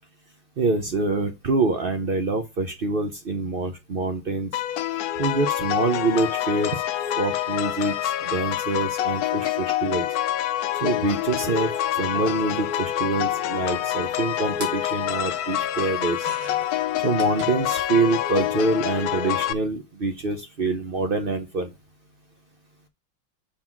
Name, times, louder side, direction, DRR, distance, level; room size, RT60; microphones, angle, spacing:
voice 1, 0.6-4.5 5.2-6.8 7.2-10.1 10.8-16.3 17.0-21.7, right 3 dB, 60° right, 5 dB, 0.5 m, -25 dB
sound 1, 4.5-19.5, left 12 dB, 90° left, 0.8 m, -26 dB
sound 2, 10.9-11.0 11.3-18.1 18.3-19.1 20.2-20.3 20.6-20.7, right 2 dB, 85° right, 2.8 m, -45 dB
6.3 x 4.0 x 6.0 m, 0.24 s
omnidirectional pair, 2.2 m